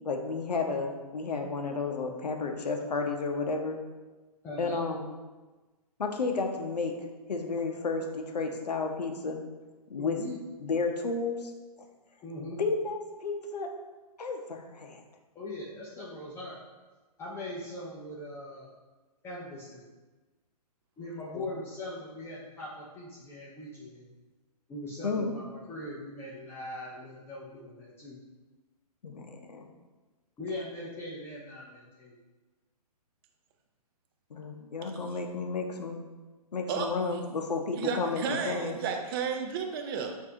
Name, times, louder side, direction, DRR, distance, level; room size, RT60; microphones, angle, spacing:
voice 1, 0.0-3.8 4.6-5.0 6.0-6.9 7.3-9.4 9.9-10.2 10.6-11.5 12.6-13.7 14.2-15.0 21.3-21.5 25.0-25.3 29.0-29.6 34.3-36.0 36.5-38.8, left 4 dB, 85° left, 3 dB, 0.7 m, -32 dB
voice 2, 4.4-4.8 10.0-10.4 12.2-12.6 15.3-16.6 17.2-18.7 19.2-19.9 21.0-24.0 24.7-28.2 30.4-32.2, left 1 dB, 10° left, -7 dB, 0.5 m, -40 dB
voice 3, 37.7-40.2, right 6 dB, 35° right, 4 dB, 0.6 m, -32 dB
6.3 x 2.7 x 2.7 m, 1.2 s
hypercardioid pair, 135°, 20 cm